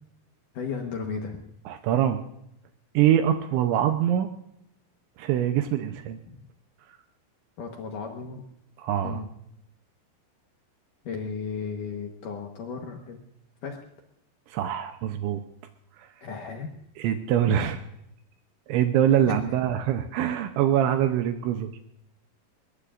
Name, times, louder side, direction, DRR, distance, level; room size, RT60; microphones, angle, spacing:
voice 1, 0.5-1.4 6.3-6.4 7.6-8.4 9.0-9.3 11.0-13.2 13.6-13.8 16.2-16.7 17.5-17.6 19.3-19.4, left 5 dB, 70° left, 2 dB, 2.0 m, -34 dB
voice 2, 1.7-2.2 2.9-4.3 5.2-6.2 8.8-9.2 14.5-15.4 17.0-17.8 18.7-21.7, right 10 dB, 80° right, 7 dB, 3.0 m, -24 dB
22.0 x 21.0 x 2.5 m, 0.76 s
omnidirectional pair, 5.5 m